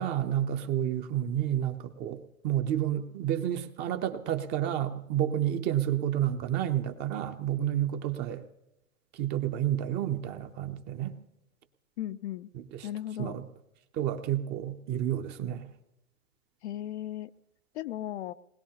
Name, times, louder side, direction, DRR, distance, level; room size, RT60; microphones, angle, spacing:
voice 1, 0.0-8.4 9.1-11.2 12.5-12.9 13.2-13.4 13.9-15.7, right 11 dB, 25° right, 8 dB, 0.7 m, -30 dB
voice 2, 12.0-12.5 12.8-13.4 16.6-17.3 17.7-18.3, left 12 dB, 55° left, 13 dB, 0.5 m, -36 dB
20.5 x 20.0 x 2.9 m, 0.91 s
hypercardioid pair, 140°, 41 cm